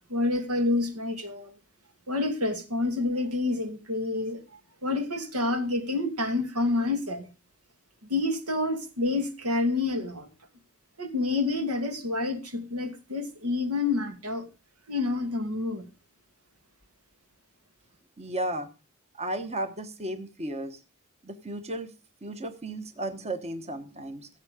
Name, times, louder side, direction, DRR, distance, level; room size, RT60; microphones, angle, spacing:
voice 1, 0.1-1.5 2.1-4.4 4.8-7.3 8.1-10.3 11.0-14.5 14.9-15.9, left 2 dB, 85° right, 2.5 m, -28 dB
voice 2, 18.2-18.7 19.2-20.8 21.2-21.9 22.2-24.3, right 1 dB, 30° right, 1.1 m, -34 dB
16.0 x 7.4 x 5.0 m
head